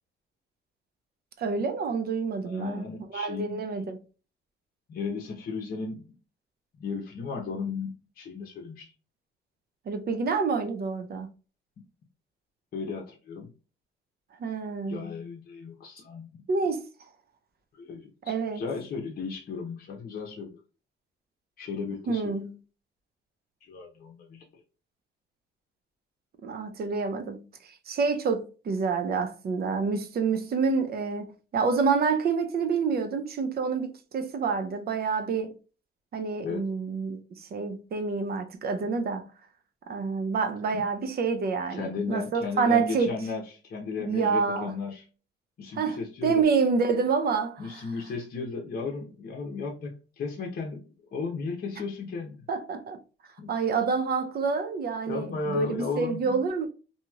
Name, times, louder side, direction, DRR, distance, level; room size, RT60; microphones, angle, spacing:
voice 1, 1.4-2.8 3.1-4.0 9.9-11.3 14.4-15.2 16.5-16.9 18.3-18.6 22.1-22.6 26.4-35.6 36.1-39.3 39.9-43.2 44.0-44.8 45.8-47.8 52.5-53.0 53.5-56.7, right 5 dB, 50° right, 0.6 m, -28 dB
voice 2, 2.4-3.6 4.9-6.1 6.8-8.9 11.8-11.9 12.7-13.5 14.9-16.4 17.7-20.6 21.6-22.3 23.7-24.4 36.4-36.7 40.7-40.8 41.7-45.0 45.6-46.4 47.6-50.8 51.1-52.5 53.4-53.5 55.1-56.4, left 4 dB, 50° left, 0.8 m, -35 dB
2.9 x 2.7 x 2.3 m
cardioid pair, 90°, 20 cm